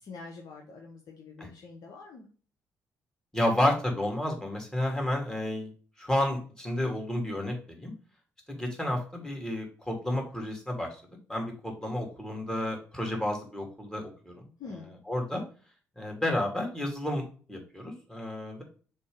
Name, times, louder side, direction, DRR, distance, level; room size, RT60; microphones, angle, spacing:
voice 1, 0.0-2.3 14.6-15.0, left 4 dB, 55° left, 1 dB, 1.0 m, -45 dB
voice 2, 3.3-5.7 6.0-7.9 8.5-10.9 11.3-14.5 15.1-15.4 16.0-17.2 17.5-18.6, left 1 dB, 10° left, 0 dB, 2.8 m, -31 dB
6.7 x 2.9 x 5.1 m, 0.40 s
figure-of-eight pair, 45°, 8 cm